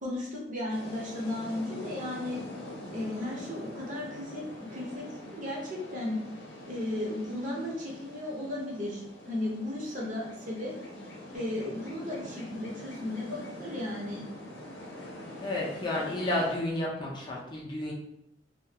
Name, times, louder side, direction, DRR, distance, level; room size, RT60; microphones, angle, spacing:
voice 1, 0.0-2.4 2.9-4.4 4.7-5.0 5.3-6.2 6.7-10.7 11.3-14.2, left 1 dB, 45° right, -4 dB, 0.7 m, -35 dB
sound 1, 0.7-16.6, left 1 dB, 85° left, 0.6 m, -44 dB
voice 2, 15.4-17.9, left 1 dB, 25° left, -4 dB, 0.5 m, -31 dB
2.3 x 2.1 x 2.8 m, 0.82 s
head